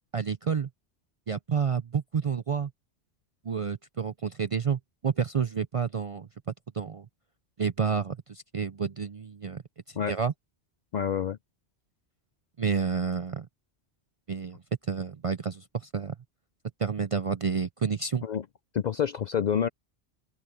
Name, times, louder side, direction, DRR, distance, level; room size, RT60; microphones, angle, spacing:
voice 1, 0.1-0.7 1.3-2.7 3.4-6.3 6.7-7.1 7.6-9.6 9.9-10.3 12.6-13.5 14.3-14.6 14.9-16.1 16.8-18.2, right 6 dB, 45° right, 0.4 m, -29 dB
voice 2, 10.9-11.4 18.2-18.4 18.7-19.7, left 8 dB, 60° left, 0.5 m, -27 dB
open air
omnidirectional pair, 1.1 m